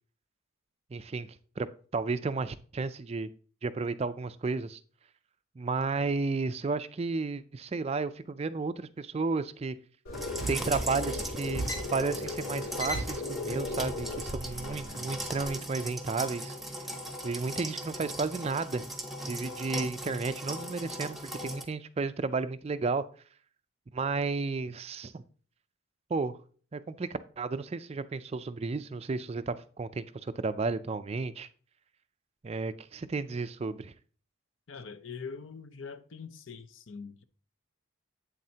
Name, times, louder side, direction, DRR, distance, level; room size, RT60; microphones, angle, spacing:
voice 1, 0.9-1.7 1.9-3.3 3.6-4.8 5.6-9.8 10.5-11.6 11.9-16.5 17.2-18.9 19.3-23.0 23.9-25.2 26.1-26.4 26.7-31.5 32.4-33.9, right 4 dB, 30° right, 0.3 m, -33 dB
sound 1, 10.0-15.5, left 1 dB, 85° left, 2.3 m, -36 dB
sound 2, 10.1-21.6, right 1 dB, ahead, 0.8 m, -39 dB
voice 2, 34.7-37.2, left 5 dB, 60° left, 0.6 m, -43 dB
8.5 x 7.5 x 2.8 m
head